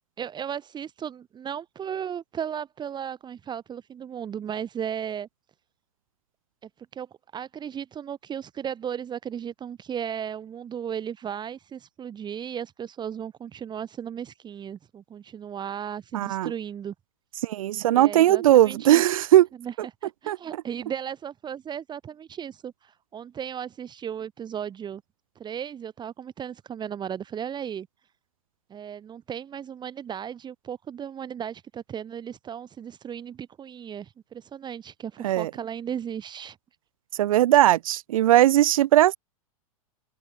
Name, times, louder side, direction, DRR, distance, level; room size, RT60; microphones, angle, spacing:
voice 1, 0.2-5.3 6.6-7.1 7.3-16.9 17.9-19.0 19.6-19.7 20.0-25.0 25.4-27.9 28.7-36.6, right 8 dB, 25° right, 2.7 m, -35 dB
voice 2, 16.1-16.5 17.4-19.5 20.3-20.4 35.2-35.5 37.2-39.2, right 13 dB, 70° right, 0.7 m, -19 dB
open air
hypercardioid pair, 110°, 18 cm